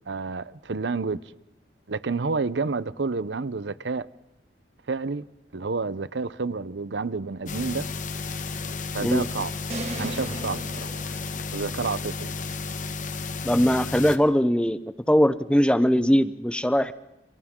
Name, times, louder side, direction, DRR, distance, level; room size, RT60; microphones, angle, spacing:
voice 1, 0.1-1.2 1.9-4.1 4.9-5.2 5.5-7.9 8.9-9.5 10.0-10.9 11.5-12.3, right 4 dB, 75° right, 0.7 m, -29 dB
sound 1, 7.5-14.2, left 4 dB, 45° left, 1.3 m, -33 dB
sound 2, 9.7-12.0, right 1 dB, 35° right, 2.0 m, -37 dB
voice 2, 13.4-14.8 15.1-16.9, equal, 5° left, 0.7 m, -21 dB
29.0 x 26.5 x 3.8 m
head